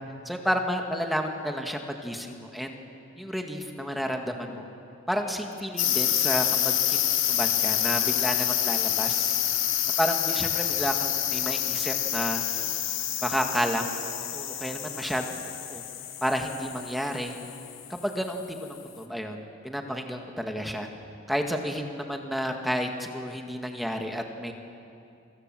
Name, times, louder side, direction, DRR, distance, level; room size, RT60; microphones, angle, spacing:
voice 1, 0.3-2.8 3.2-4.7 5.1-9.3 10.0-12.4 13.2-14.0 14.3-15.8 16.2-17.4 17.9-20.9 21.3-24.5, equal, ahead, 3 dB, 1.8 m, -31 dB
sound 1, 5.8-18.1, left 11 dB, 75° left, 2.1 m, -28 dB
30.0 x 24.5 x 7.7 m, 2.6 s
head